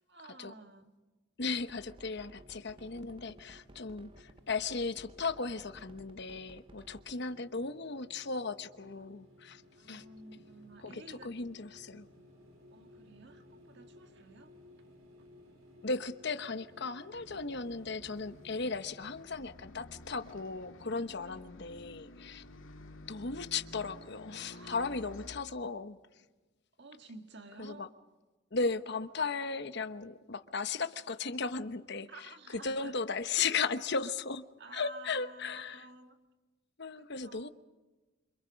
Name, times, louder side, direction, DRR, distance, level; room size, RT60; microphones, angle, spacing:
voice 1, 0.1-0.9 7.1-7.3 9.8-11.3 12.7-14.5 15.2-15.3 21.2-21.4 24.5-24.8 26.8-27.9 32.1-32.9 34.6-36.2 37.0-37.5, right 3 dB, 55° right, 6 dB, 2.1 m, -52 dB
voice 2, 1.4-9.6 9.9-10.0 10.8-12.1 15.8-22.4 23.1-26.0 27.6-27.9 28.5-34.4 34.7-35.8 36.8-37.5, left 4 dB, 55° left, 10 dB, 1.0 m, -36 dB
sound 1, 1.6-7.2, right 1 dB, 25° right, 0.8 m, -56 dB
sound 2, 2.4-21.0, left 1 dB, 85° right, 4.4 m, -59 dB
Bus, 17.1-25.4, left 1 dB, 75° left, 2.2 m, -52 dB
27.5 x 26.0 x 5.3 m, 1.2 s
head